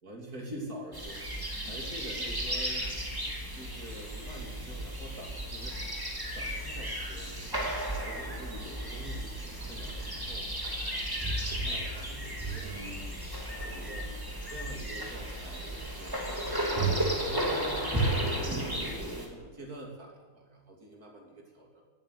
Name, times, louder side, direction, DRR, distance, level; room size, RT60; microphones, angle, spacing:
voice 1, 0.0-1.2 1.6-2.9 3.5-5.8 6.3-10.5 11.2-13.2 13.6-14.1 14.5-21.8, right 1 dB, 50° right, 0 dB, 3.5 m, -45 dB
sound 1, 0.9-19.3, right 1 dB, 10° right, 2.6 m, -34 dB
17.0 x 9.2 x 8.4 m, 1.4 s
omnidirectional pair, 2.1 m